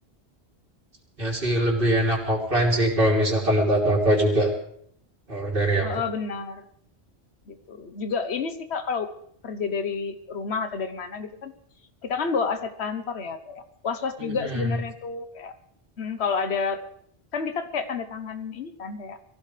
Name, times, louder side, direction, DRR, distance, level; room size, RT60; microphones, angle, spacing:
voice 1, 1.2-4.5 5.3-6.0 14.2-14.7, right 1 dB, 60° right, -1 dB, 3.5 m, -22 dB
voice 2, 5.8-6.7 7.5-9.1 9.4-11.5 12.0-15.6 16.0-16.8 17.3-19.2, left 5 dB, 85° left, 9 dB, 1.3 m, -30 dB
23.5 x 15.5 x 3.3 m, 0.67 s
omnidirectional pair, 1.1 m